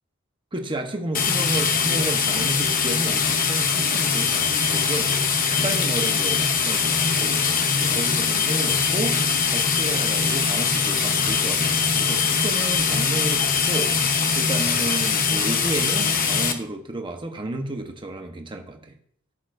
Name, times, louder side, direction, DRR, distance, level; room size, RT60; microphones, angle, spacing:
voice 1, 0.5-13.9 14.3-19.0, right 2 dB, 25° right, 1.0 m, -32 dB
sound 1, 1.1-16.5, left 6 dB, 45° left, 0.9 m, -22 dB
16.0 x 6.9 x 2.6 m
head